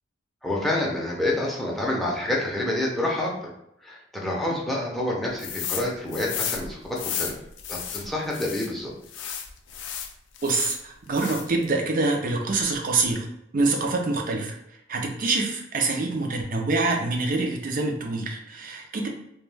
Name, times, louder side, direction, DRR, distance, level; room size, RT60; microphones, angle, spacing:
voice 1, 0.4-3.5 3.8-7.3 7.7-8.9, left 1 dB, ahead, -4 dB, 0.5 m, -28 dB
sound 1, 5.4-5.9 6.1-8.7 9.1-10.8 11.1-11.6, left 8 dB, 70° left, 0.3 m, -33 dB
voice 2, 10.4-13.3 13.5-14.5 14.9-19.1, right 3 dB, 45° right, 2 dB, 0.5 m, -25 dB
2.2 x 2.2 x 3.2 m, 0.76 s
head